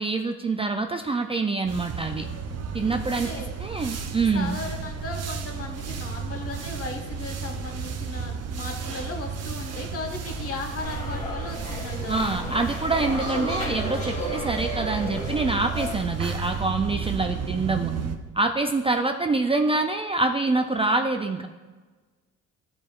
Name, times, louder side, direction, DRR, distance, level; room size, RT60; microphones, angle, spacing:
voice 1, 0.0-2.3 2.7-3.3 3.6-4.6 12.1-17.9 18.3-21.5, right 3 dB, 20° right, 5 dB, 0.4 m, -25 dB
sound 1, 1.7-18.2, right 5 dB, 55° right, 0.7 m, -33 dB
voice 2, 4.1-12.2, left 3 dB, 50° left, 2 dB, 1.3 m, -36 dB
sound 2, 10.8-15.9, equal, 25° left, 1.9 m, -33 dB
12.0 x 4.7 x 2.4 m, 1.3 s
cardioid pair, 90°, 30 cm